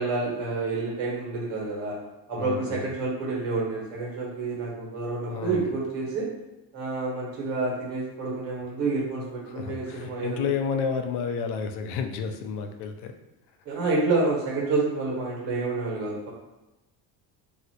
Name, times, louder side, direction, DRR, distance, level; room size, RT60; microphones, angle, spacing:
voice 1, 0.0-2.0 2.3-6.3 6.7-10.4 13.7-16.3, right 3 dB, 90° right, -4 dB, 1.2 m, -28 dB
voice 2, 2.4-2.9 5.3-5.7 9.5-13.1, left 6 dB, 70° left, 6 dB, 0.5 m, -31 dB
3.1 x 2.8 x 2.8 m, 1.0 s
cardioid pair, 160°, 42 cm